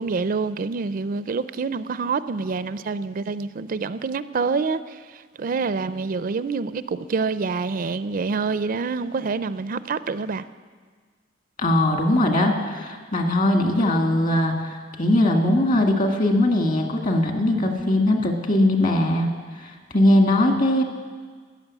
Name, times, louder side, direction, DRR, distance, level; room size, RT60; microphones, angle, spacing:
voice 1, 0.0-10.4, right 4 dB, 45° right, 14 dB, 0.4 m, -27 dB
voice 2, 11.6-19.3 19.6-20.8, left 1 dB, 45° left, 4 dB, 1.8 m, -20 dB
14.5 x 10.0 x 8.3 m, 1.5 s
head